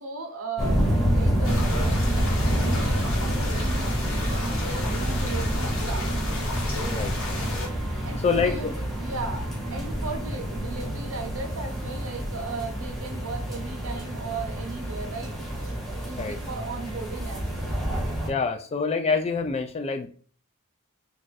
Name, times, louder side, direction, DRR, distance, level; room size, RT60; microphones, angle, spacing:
voice 1, 0.0-2.0 2.5-6.1 8.0-15.8 16.0-17.8, right 3 dB, 70° right, 4 dB, 0.7 m, -37 dB
sound 1, 0.6-18.3, equal, ahead, 0.8 m, -28 dB
sound 2, 1.4-7.7, left 1 dB, 65° left, 1.0 m, -32 dB
voice 2, 6.9-7.4 8.0-8.7 16.2-16.4 18.3-20.1, left 5 dB, 30° left, 7 dB, 0.3 m, -27 dB
2.5 x 2.4 x 3.9 m, 0.42 s
head